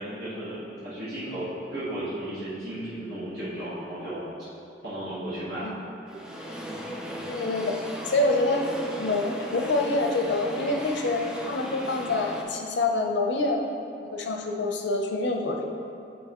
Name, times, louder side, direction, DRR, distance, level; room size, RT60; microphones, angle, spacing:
voice 1, 0.0-4.2 4.8-5.7 6.6-7.3, right 1 dB, 65° right, -12 dB, 1.3 m, -35 dB
sound 1, 6.1-12.4, equal, 5° right, 0.4 m, -37 dB
voice 2, 7.3-7.7 8.1-8.7 9.0-13.6 14.0-15.6, left 2 dB, 80° left, 2 dB, 0.6 m, -26 dB
7.3 x 4.7 x 3.0 m, 2.6 s
head